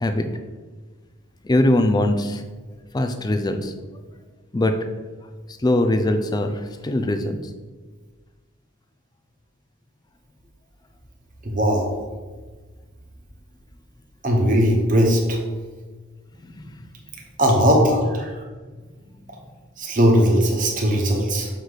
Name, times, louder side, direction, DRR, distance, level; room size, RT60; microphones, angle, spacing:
voice 1, 1.4-2.4 2.9-3.7 4.5-4.8 5.6-7.4 16.4-16.9, left 1 dB, 20° left, 7 dB, 0.4 m, -21 dB
voice 2, 11.4-11.9 14.2-15.4 17.4-18.3 19.8-21.5, equal, 40° right, 0 dB, 1.1 m, -18 dB
6.3 x 4.9 x 4.0 m, 1.4 s
head